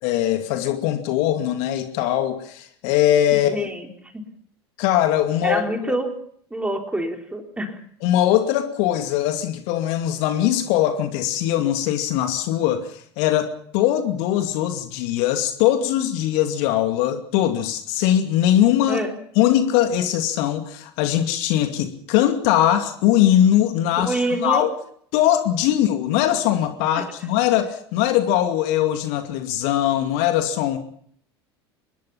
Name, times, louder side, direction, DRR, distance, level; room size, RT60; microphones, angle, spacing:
voice 1, 0.0-3.7 4.8-5.6 8.0-19.0 19.4-24.7 25.1-30.8, left 11 dB, 50° left, 7 dB, 2.5 m, -21 dB
voice 2, 3.5-3.9 4.1-4.2 5.4-6.2 6.5-7.8 18.9-19.1 24.1-24.7 27.0-27.1, right 1 dB, 10° right, 3 dB, 4.0 m, -26 dB
25.0 x 21.0 x 5.8 m, 0.63 s
figure-of-eight pair, 75°, 14 cm